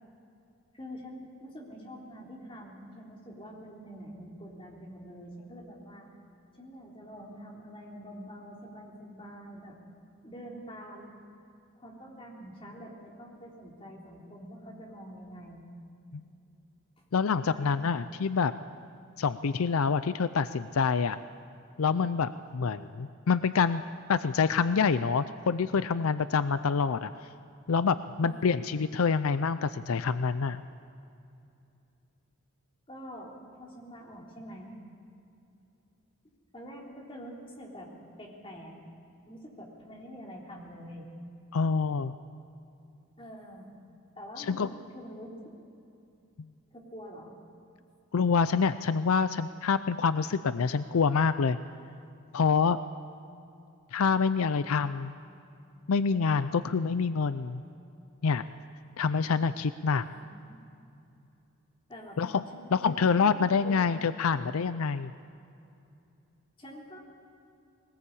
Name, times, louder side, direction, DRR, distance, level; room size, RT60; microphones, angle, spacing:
voice 1, 0.7-6.0 6.5-9.8 10.2-11.1 11.8-15.6 17.5-17.8 28.2-28.6 32.9-34.7 36.5-37.9 38.2-38.7 39.3-41.1 43.2-43.7 44.2-45.5 46.7-47.4 60.0-60.6 61.9-62.2 62.5-63.9 66.6-67.0, equal, 25° left, -2 dB, 3.6 m, -46 dB
voice 2, 17.1-18.5 19.2-21.2 21.8-23.8 24.1-27.1 27.7-30.6 41.5-42.1 44.4-44.7 48.1-51.6 52.3-52.8 53.9-55.1 55.9-57.6 58.2-58.4 59.0-60.0 62.2-62.4 62.7-65.1, left 5 dB, 75° left, 13 dB, 0.5 m, -26 dB
21.0 x 19.0 x 8.5 m, 2.7 s
head